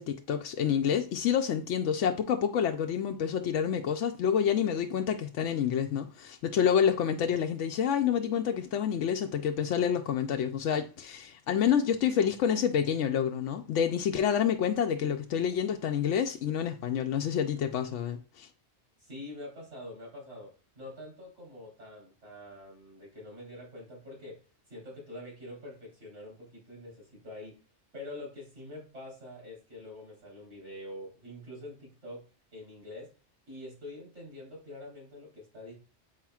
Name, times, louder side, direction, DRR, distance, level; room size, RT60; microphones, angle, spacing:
voice 1, 0.0-18.5, left 8 dB, 85° left, 0.9 m, -28 dB
voice 2, 19.0-24.4 24.7-27.5 27.9-32.2 32.5-33.1 33.5-35.8, left 1 dB, 85° right, 4.1 m, -45 dB
8.1 x 5.8 x 2.3 m
omnidirectional pair, 1.2 m